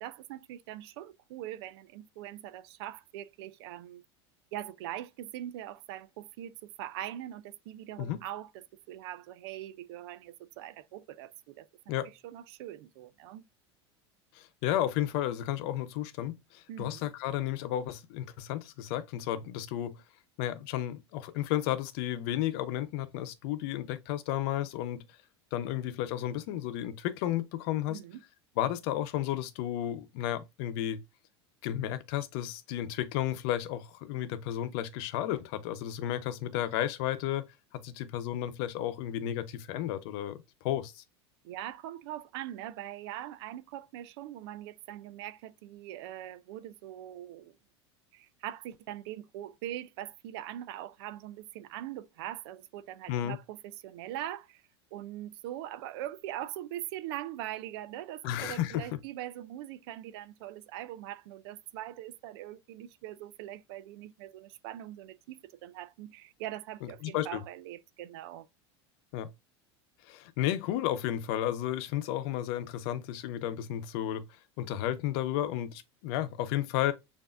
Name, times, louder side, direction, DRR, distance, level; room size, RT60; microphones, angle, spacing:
voice 1, 0.0-4.0 4.5-11.7 12.2-13.4 16.7-17.1 27.9-28.2 41.4-47.6 48.1-54.6 54.9-68.5, right 13 dB, 65° right, 0.5 m, -42 dB
voice 2, 14.3-20.0 20.4-25.0 25.5-28.0 28.6-31.0 31.6-37.4 37.7-40.4 40.6-41.0 53.1-53.4 58.2-58.9 66.8-67.4 69.1-69.3 70.1-74.2 74.6-76.9, left 12 dB, 60° left, 0.8 m, -33 dB
6.8 x 2.7 x 2.5 m
hypercardioid pair, 90°, 14 cm